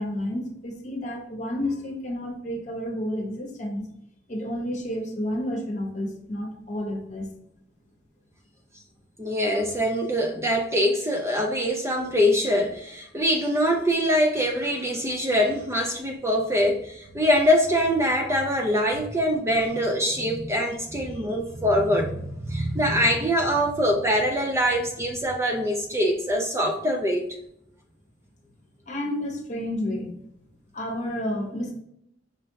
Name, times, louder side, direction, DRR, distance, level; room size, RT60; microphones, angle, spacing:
voice 1, 0.0-3.8 4.3-7.3 21.1-21.2 28.9-30.2 30.7-31.7, left 1 dB, 40° left, 1 dB, 1.0 m, -30 dB
voice 2, 9.2-27.2, equal, 15° right, 2 dB, 0.4 m, -23 dB
5.0 x 3.3 x 2.8 m, 0.75 s
head